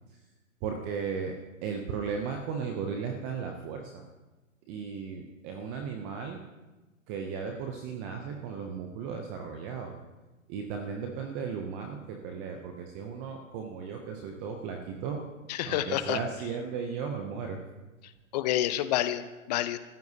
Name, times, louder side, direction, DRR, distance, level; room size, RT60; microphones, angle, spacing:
voice 1, 0.6-1.3 1.6-4.0 4.7-6.4 7.1-9.9 10.5-15.3 15.7-17.6, right 6 dB, 10° right, 3 dB, 0.4 m, -35 dB
voice 2, 15.5-16.2 18.3-19.8, left 13 dB, 30° left, 12 dB, 0.7 m, -28 dB
30.0 x 14.5 x 2.7 m, 1.2 s
hypercardioid pair, 130°, 40 cm